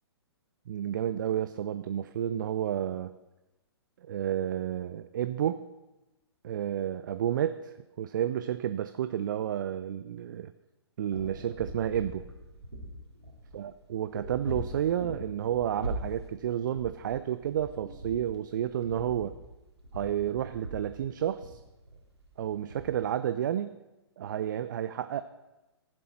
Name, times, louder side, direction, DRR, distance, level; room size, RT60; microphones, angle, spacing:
voice 1, 0.7-3.1 4.0-5.6 6.4-10.5 11.0-12.3 13.5-19.4 19.9-21.6 22.4-23.7 24.2-25.2, right 10 dB, 45° right, 12 dB, 0.4 m, -31 dB
sound 1, 11.1-22.8, right 1 dB, 90° right, 2.6 m, -42 dB
15.0 x 7.6 x 4.4 m, 1.0 s
figure-of-eight pair, 120°, 14 cm